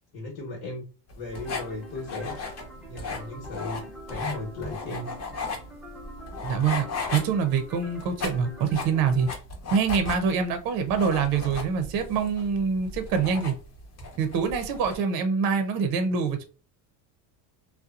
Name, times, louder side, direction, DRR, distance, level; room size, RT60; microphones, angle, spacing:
voice 1, 0.1-0.8 1.2-2.4 2.9-3.8 4.1-5.1, left 2 dB, 65° left, 0 dB, 1.2 m, -36 dB
Pen scribble, 1.1-15.0, left 3 dB, 35° left, 0.9 m, -36 dB
sound 1, 1.3-9.3, equal, ahead, 0.3 m, -45 dB
voice 2, 6.4-6.9 7.1-9.3 9.7-13.5 14.2-16.5, right 6 dB, 50° right, 7 dB, 0.6 m, -25 dB
2.8 x 2.2 x 2.4 m, 0.34 s
cardioid pair, 135°, 47 cm